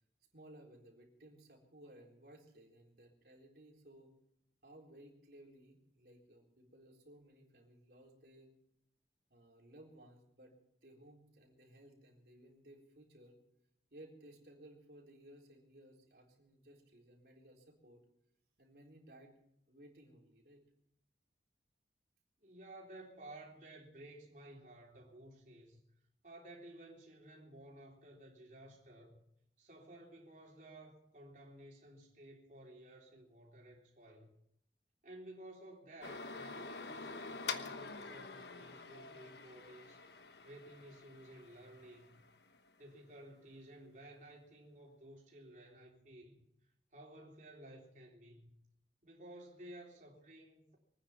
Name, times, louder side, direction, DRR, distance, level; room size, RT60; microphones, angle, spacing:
voice 1, 0.3-4.1 4.6-8.5 9.3-10.5 10.8-13.4 13.9-18.0 18.6-19.4 19.7-20.6, right 1 dB, 60° right, -1 dB, 4.0 m, -59 dB
voice 2, 22.4-25.8 26.2-29.2 29.6-34.3 35.0-40.0 40.4-42.2 42.8-46.4 46.9-48.5 49.0-50.8, right 1 dB, 45° right, -2 dB, 3.7 m, -55 dB
sound 1, 36.0-42.7, left 4 dB, 75° left, 1.1 m, -47 dB
24.0 x 9.6 x 5.9 m, 0.76 s
head